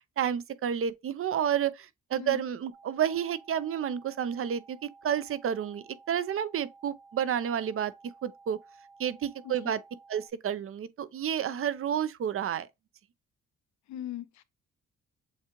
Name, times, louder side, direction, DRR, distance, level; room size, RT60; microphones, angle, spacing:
voice 1, 0.2-7.9 8.2-8.6 9.0-9.8 10.1-12.7, right 9 dB, 45° right, 0.6 m, -30 dB
sound 1, 2.7-10.3, right 4 dB, 80° right, 1.2 m, -55 dB
voice 2, 13.9-14.4, left 11 dB, 70° left, 0.6 m, -40 dB
7.2 x 2.4 x 2.9 m
cardioid pair, 90°, 30 cm